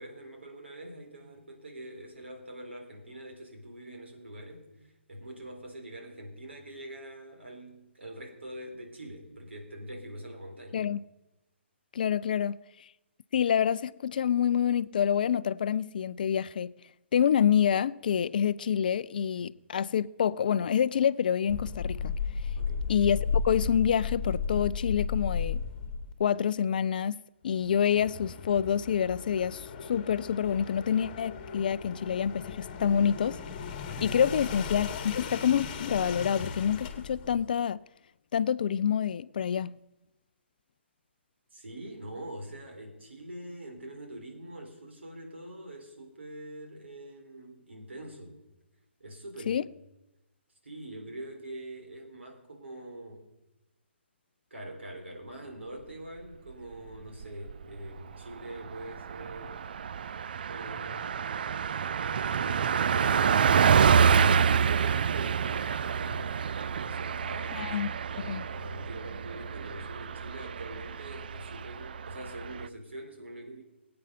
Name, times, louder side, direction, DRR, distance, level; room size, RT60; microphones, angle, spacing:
voice 1, 0.0-4.7 5.1-10.8 22.6-22.9 33.9-34.0 34.3-34.4 41.5-48.4 49.0-49.6 50.6-53.3 54.5-59.6 60.5-61.6 62.0-66.4 66.8-73.6, right 1 dB, 70° right, 3.9 m, -44 dB
voice 2, 11.9-12.6 13.3-16.7 17.1-22.1 22.9-25.6 26.2-33.4 34.0-37.8 38.3-39.8 49.5-49.6 67.5-67.9 68.3-68.4, left 8 dB, 45° left, 0.4 m, -27 dB
sound 1, 21.5-26.1 27.6-37.5, left 5 dB, 30° left, 1.6 m, -35 dB
Car passing by, 57.0-57.6 58.0-58.1 58.4-72.7, right 7 dB, 50° right, 0.4 m, -28 dB
22.5 x 8.7 x 5.4 m
figure-of-eight pair, 135°, 6 cm